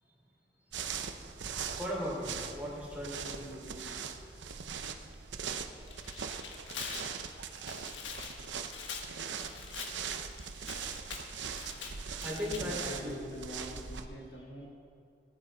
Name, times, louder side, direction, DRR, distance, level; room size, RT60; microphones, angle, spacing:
sound 1, 0.7-14.1, right 6 dB, 80° right, 0.8 m, -41 dB
voice 1, 1.8-4.1 4.4-4.5 4.9-5.4 11.7-11.8 12.2-13.3, equal, 10° right, -6 dB, 3.7 m, -39 dB
Tearing, 5.7-12.6, left 5 dB, 90° left, 1.5 m, -44 dB
voice 2, 12.4-14.7, equal, 70° left, -2 dB, 2.2 m, -45 dB
18.5 x 9.4 x 4.4 m, 2.4 s
head